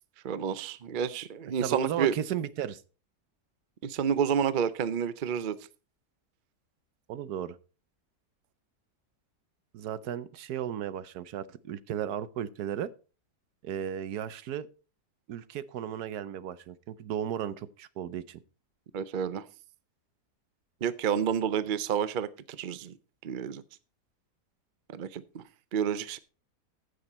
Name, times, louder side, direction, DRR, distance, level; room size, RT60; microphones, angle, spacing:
voice 1, 0.2-2.1 3.8-5.6 18.9-19.4 20.8-23.0 23.2-23.6 24.9-25.4 25.7-26.2, right 8 dB, 55° right, 0.5 m, -29 dB
voice 2, 1.6-2.8 7.1-7.6 9.7-12.9 13.6-14.7 15.3-18.4, right 9 dB, 80° right, 1.3 m, -35 dB
15.0 x 6.5 x 4.2 m
omnidirectional pair, 1.7 m